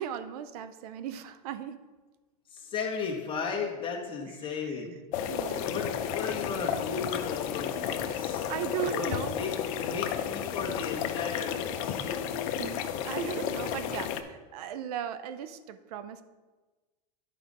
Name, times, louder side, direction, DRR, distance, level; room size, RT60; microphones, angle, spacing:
voice 1, 0.0-1.9 4.6-4.9 5.3-5.7 8.1-9.4 12.6-16.2, right 9 dB, 70° right, 12 dB, 0.5 m, -37 dB
voice 2, 2.5-5.0 5.3-5.4 5.6-8.5 8.8-9.5 9.8-12.4, left 5 dB, 25° left, -1 dB, 1.4 m, -35 dB
sound 1, 5.1-14.2, left 9 dB, 60° left, 0.6 m, -32 dB
10.0 x 5.0 x 4.1 m, 1.3 s
supercardioid pair, 130°, 20 cm